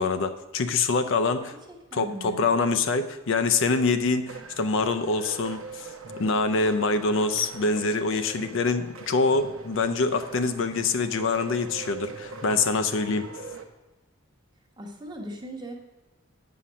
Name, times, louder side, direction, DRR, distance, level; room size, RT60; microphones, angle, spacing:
voice 1, 0.0-1.6 1.9-5.9 6.2-13.3, left 3 dB, 65° left, 9 dB, 0.5 m, -25 dB
voice 2, 1.4-2.4 14.8-15.8, right 1 dB, 20° right, 1 dB, 1.1 m, -39 dB
sound 1, 4.3-13.6, right 3 dB, 80° right, 0.8 m, -42 dB
8.5 x 5.8 x 5.1 m, 1.1 s
head